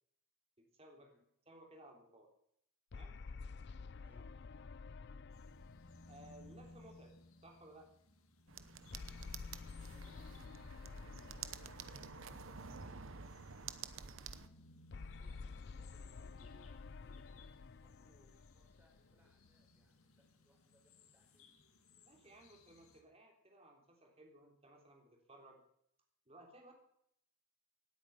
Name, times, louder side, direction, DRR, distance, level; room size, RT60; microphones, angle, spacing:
voice 1, 0.6-1.1 1.4-2.3 2.9-3.2 6.1-7.1 7.4-7.9 22.0-25.6 26.3-26.7, right 1 dB, 25° right, 2 dB, 3.4 m, -59 dB
sound 1, 2.9-7.5 8.9-13.3 14.9-19.5, left 4 dB, 50° left, 0.4 m, -51 dB
voice 2, 4.0-4.3 9.7-14.9 15.2-21.5, left 1 dB, 10° right, 0 dB, 4.2 m, -73 dB
sound 2, 5.3-23.0, left 2 dB, 75° left, 2.1 m, -63 dB
sound 3, 8.5-14.5, right 6 dB, 65° right, 0.9 m, -50 dB
18.0 x 9.2 x 5.7 m, 0.71 s
head